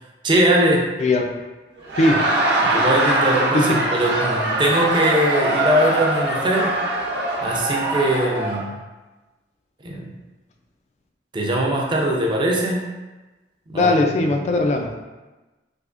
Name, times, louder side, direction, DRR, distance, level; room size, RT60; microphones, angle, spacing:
voice 1, 0.2-0.9 2.6-6.7 7.4-8.7 9.8-10.1 11.3-12.9 13.7-13.9, right 1 dB, 25° right, -1 dB, 0.4 m, -21 dB
Laughter, 1.8-8.6, right 2 dB, 65° right, 0.6 m, -22 dB
voice 2, 2.0-2.3 3.5-3.8 13.7-15.0, left 2 dB, 40° left, 3 dB, 0.3 m, -19 dB
3.4 x 2.8 x 2.4 m, 1.1 s
head